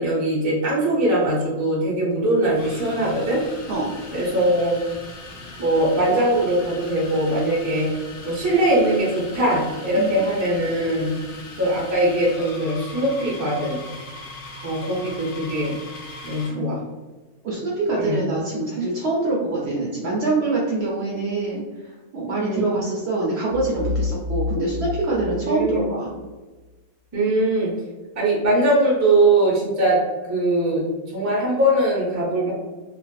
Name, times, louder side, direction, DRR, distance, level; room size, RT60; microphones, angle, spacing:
voice 1, 0.0-3.4 4.1-4.8 5.6-7.9 8.2-11.1 11.6-13.9 14.6-15.8 16.2-16.8 18.0-18.2 22.3-22.8 25.4-25.8 27.1-27.7 28.2-32.5, right 1 dB, 20° right, -6 dB, 0.4 m, -21 dB
sound 1, 1.1-1.3 2.4-16.6, left 2 dB, 65° left, 0.5 m, -40 dB
voice 2, 9.9-10.2 16.5-16.7 17.4-26.1, right 2 dB, 65° right, -4 dB, 0.7 m, -25 dB
sound 2, 23.5-26.3, left 3 dB, 85° left, 1.0 m, -29 dB
2.5 x 2.4 x 2.2 m, 1.2 s
omnidirectional pair, 1.4 m